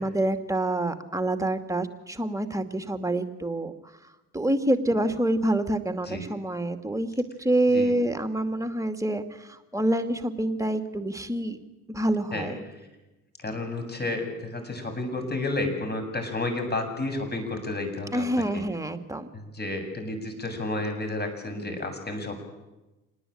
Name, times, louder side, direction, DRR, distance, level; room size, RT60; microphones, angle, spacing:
voice 1, 0.0-3.9 4.3-11.6 11.9-12.6 18.1-19.3, right 1 dB, 10° right, 7 dB, 2.6 m, -27 dB
voice 2, 13.4-18.6 19.3-22.4, left 2 dB, 25° left, 6 dB, 7.8 m, -31 dB
27.5 x 19.5 x 9.0 m, 1.0 s
figure-of-eight pair, 55°, 41 cm